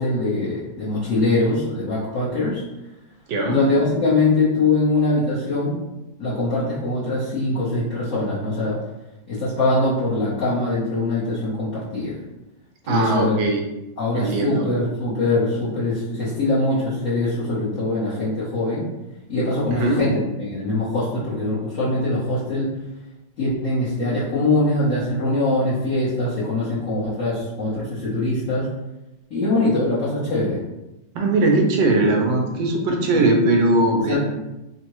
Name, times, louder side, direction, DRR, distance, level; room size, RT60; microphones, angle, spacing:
voice 1, 0.0-2.6 3.5-5.8 6.2-8.8 9.3-12.2 12.8-13.3 14.0-18.9 19.3-22.7 23.4-28.7 29.3-30.6 33.1-33.3 34.1-34.2, left 2 dB, 55° left, -10 dB, 1.0 m, -22 dB
voice 2, 3.3-3.6 12.9-13.6 14.1-14.7 19.7-20.0 31.1-34.2, right 2 dB, 90° right, 1 dB, 1.3 m, -20 dB
3.6 x 2.1 x 2.9 m, 0.97 s
omnidirectional pair, 2.0 m